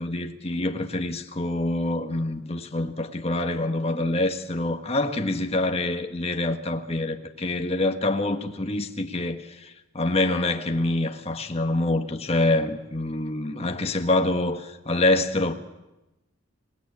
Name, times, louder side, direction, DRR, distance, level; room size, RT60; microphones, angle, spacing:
voice 1, 0.0-15.5, left 2 dB, 30° left, 1.5 m, -26 dB
26.5 x 18.5 x 9.8 m
head